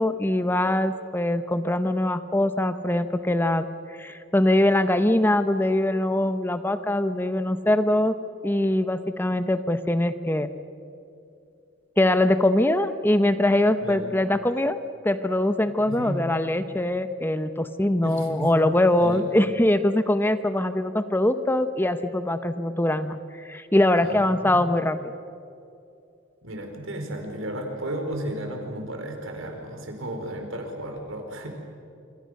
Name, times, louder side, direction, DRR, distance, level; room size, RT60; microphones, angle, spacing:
voice 1, 0.0-3.6 4.0-8.1 8.4-10.5 12.0-14.8 15.0-23.2 23.4-25.1, left 1 dB, 10° left, 10 dB, 0.8 m, -22 dB
voice 2, 13.8-14.1 15.8-16.2 18.0-18.5 19.0-19.3 24.0-24.7 26.4-31.5, right 1 dB, 90° right, 4 dB, 4.6 m, -33 dB
26.0 x 26.0 x 6.5 m, 2.6 s
head